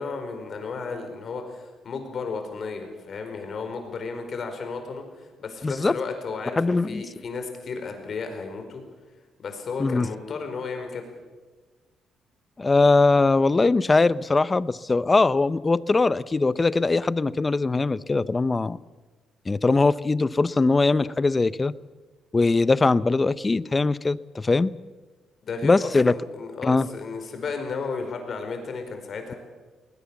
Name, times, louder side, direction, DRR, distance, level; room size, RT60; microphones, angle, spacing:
voice 1, 0.0-8.8 9.4-11.0 25.4-29.4, left 4 dB, 55° left, 6 dB, 4.7 m, -33 dB
voice 2, 5.6-5.9 6.6-7.0 9.8-10.1 12.6-18.8 19.5-21.7 22.3-24.7 25.6-26.1 26.6-26.9, left 3 dB, 25° left, 18 dB, 0.6 m, -21 dB
20.5 x 20.0 x 7.2 m, 1.3 s
cardioid pair, 90°, 0 cm